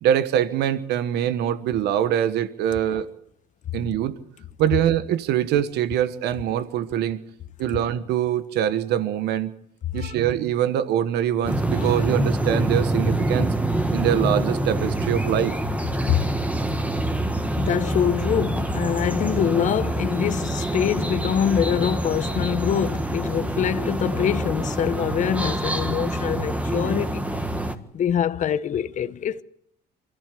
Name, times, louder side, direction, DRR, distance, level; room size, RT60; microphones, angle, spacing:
voice 1, 0.0-3.1 3.7-4.1 4.6-7.2 7.6-9.5 9.9-13.5 13.8-15.5, right 10 dB, 80° right, 1.3 m, -23 dB
sound 1, 11.5-27.8, right 1 dB, 10° right, 1.6 m, -25 dB
voice 2, 17.6-27.3 27.9-29.4, left 9 dB, 45° left, 0.9 m, -24 dB
24.0 x 14.5 x 8.4 m
cardioid pair, 110°, 17 cm